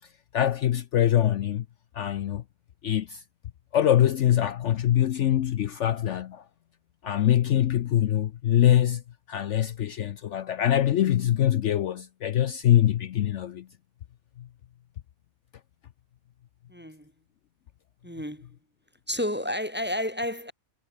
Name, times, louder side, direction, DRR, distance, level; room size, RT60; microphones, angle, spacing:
voice 1, 0.3-1.6 1.9-2.4 2.8-3.2 3.7-6.4 7.0-9.0 9.3-13.7 14.4-14.5, left 11 dB, 65° left, 0.9 m, -23 dB
voice 2, 16.7-17.1 18.0-18.5 19.1-20.5, left 1 dB, 10° right, 1.4 m, -31 dB
omnidirectional pair, 1.5 m